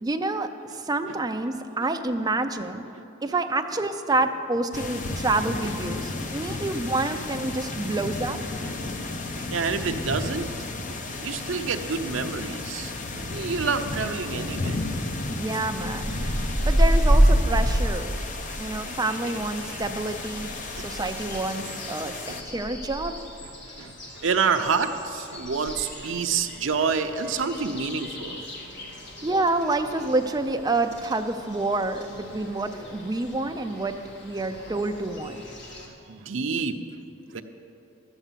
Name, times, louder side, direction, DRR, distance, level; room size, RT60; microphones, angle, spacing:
voice 1, 0.0-2.9 3.2-8.4 15.3-18.1 18.6-22.2 22.5-23.2 29.2-35.4, right 2 dB, 20° right, 6 dB, 0.5 m, -28 dB
sound 1, 4.7-22.4, left 2 dB, 40° left, 0.7 m, -33 dB
voice 2, 8.6-9.1 9.3-10.6 10.8-14.8 16.2-16.3 18.5-18.6 18.8-19.4 20.4-20.5 20.7-20.9 22.3-22.6 23.4-28.5 35.9-36.8 37.3-37.4, right 5 dB, 65° right, 6 dB, 0.7 m, -29 dB
sound 2, 16.0-19.0 19.4-35.9, equal, 55° left, 1.8 m, -29 dB
12.0 x 8.0 x 7.4 m, 2.8 s
head